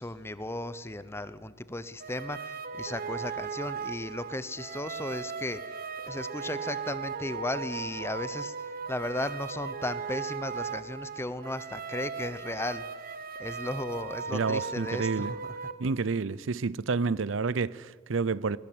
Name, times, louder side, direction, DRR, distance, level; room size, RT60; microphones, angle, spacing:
voice 1, 0.0-15.6, left 1 dB, 15° left, 0.9 m, -36 dB
sound 1, 2.0-15.7, right 5 dB, 45° right, 1.1 m, -37 dB
voice 2, 14.3-15.3 15.8-18.6, right 4 dB, 70° right, 0.6 m, -29 dB
21.0 x 19.0 x 8.7 m
head